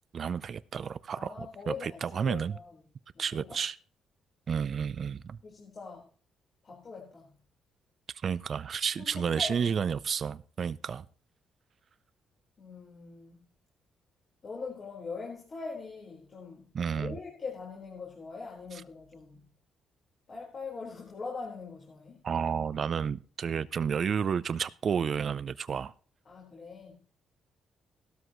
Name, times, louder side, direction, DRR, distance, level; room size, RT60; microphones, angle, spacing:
voice 1, 0.1-1.3 1.7-2.6 3.2-3.8 4.5-5.4 8.2-11.1 16.7-17.2 18.7-18.8 22.2-25.9, right 7 dB, 50° right, 0.5 m, -31 dB
voice 2, 1.1-2.7 3.1-3.6 5.0-5.1 5.4-6.1 6.6-7.3 9.0-9.7 12.6-13.5 14.4-19.4 20.3-22.2 26.3-27.0, left 4 dB, 45° left, 4.4 m, -42 dB
16.5 x 13.0 x 3.1 m
cardioid pair, 90°, 0 cm